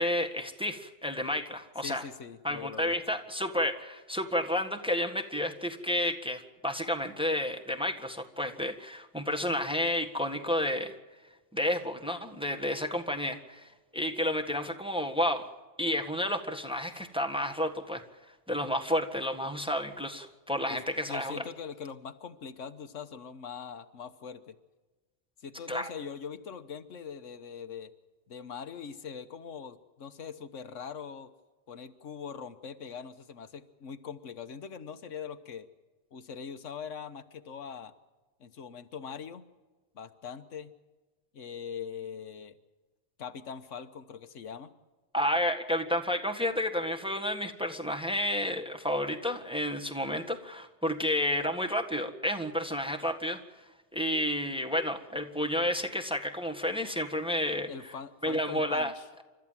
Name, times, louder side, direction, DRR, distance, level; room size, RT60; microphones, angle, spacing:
voice 1, 0.0-2.0 2.4-10.9 11.5-15.4 15.8-18.0 18.5-21.4 25.7-25.9 45.1-53.4 53.9-57.7 58.2-58.9, left 1 dB, 5° right, 4 dB, 1.6 m, -31 dB
voice 2, 1.8-2.9 20.7-20.8 21.1-24.6 25.4-27.9 28.3-31.3 31.7-35.7 36.1-37.9 38.4-39.4 39.9-40.7 41.3-42.6 43.2-44.7 57.7-59.1, left 6 dB, 85° left, 9 dB, 1.4 m, -42 dB
30.0 x 13.5 x 7.4 m, 1.2 s
omnidirectional pair, 1.2 m